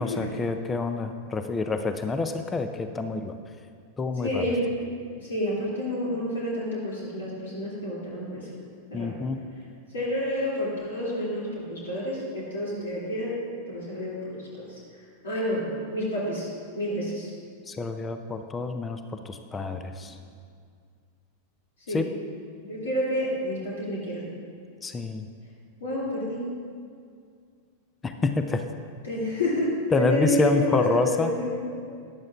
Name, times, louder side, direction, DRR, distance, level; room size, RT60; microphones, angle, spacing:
voice 1, 0.0-3.4 4.0-4.4 8.9-9.4 17.7-19.0 19.3-20.1 21.9-22.1 24.8-25.3 28.0-28.6 29.9-31.3, left 3 dB, 15° left, 8 dB, 0.5 m, -27 dB
voice 2, 4.2-4.8 5.2-8.4 8.9-9.1 9.9-13.3 13.7-14.2 14.7-14.8 15.2-16.5 16.7-17.3 21.9-22.1 22.6-24.3 25.8-26.4 29.0-31.8, equal, 65° left, -6 dB, 2.5 m, -29 dB
14.5 x 10.5 x 2.4 m, 2.2 s
figure-of-eight pair, 90°, 0 cm